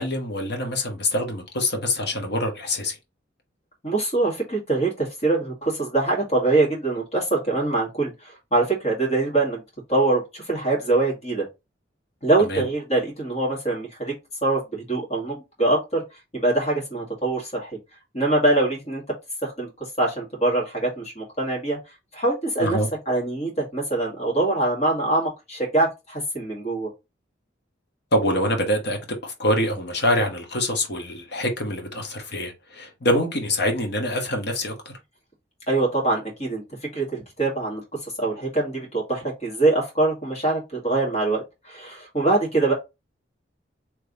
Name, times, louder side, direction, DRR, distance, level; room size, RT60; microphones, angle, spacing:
voice 1, 0.0-3.0 12.4-12.7 22.6-22.9 28.1-34.9, left 1 dB, 60° left, 1.3 m, -25 dB
voice 2, 3.8-8.1 8.5-9.6 9.9-11.4 12.2-14.1 14.4-16.0 16.3-17.7 18.1-19.0 19.4-19.7 20.0-21.8 22.1-22.8 23.1-26.9 35.7-36.6 36.9-37.8 38.2-42.7, right 2 dB, 35° left, 2.1 m, -23 dB
3.4 x 3.2 x 4.0 m
head